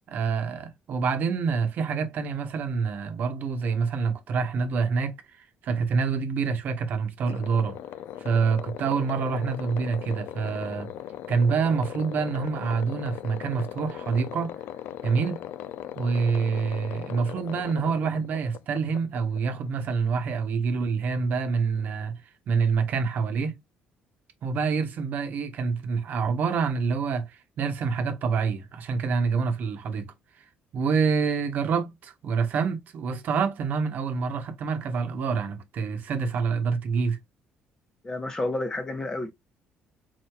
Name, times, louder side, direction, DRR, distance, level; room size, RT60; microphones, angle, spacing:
voice 1, 0.1-5.1 5.6-7.8 8.2-10.9 11.3-14.6 15.0-15.4 16.0-22.1 22.5-23.5 24.4-30.1 30.7-37.2, right 5 dB, 55° right, 1.0 m, -27 dB
sound 1, 7.3-19.9, left 11 dB, 75° left, 0.4 m, -39 dB
voice 2, 38.0-39.3, left 2 dB, 20° left, 1.0 m, -30 dB
4.7 x 4.1 x 2.2 m
cardioid pair, 145°, 4 cm